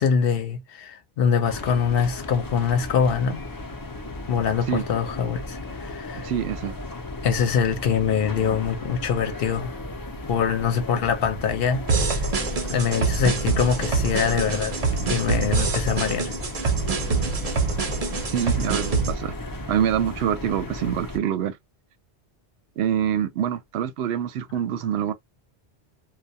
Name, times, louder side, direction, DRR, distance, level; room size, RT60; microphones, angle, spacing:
voice 1, 0.0-3.4 4.3-6.3 7.2-9.7 10.3-12.3 12.6-14.7 15.1-16.3 16.6-16.7, left 7 dB, 65° left, 0.9 m, -24 dB
sound 1, 1.4-21.2, left 2 dB, 25° left, 0.5 m, -36 dB
voice 2, 6.2-6.8 18.3-19.3 19.7-21.6 22.8-25.1, right 9 dB, 80° right, 0.8 m, -25 dB
sound 2, 11.9-19.1, right 4 dB, 40° right, 0.7 m, -25 dB
2.2 x 2.2 x 2.6 m
omnidirectional pair, 1.1 m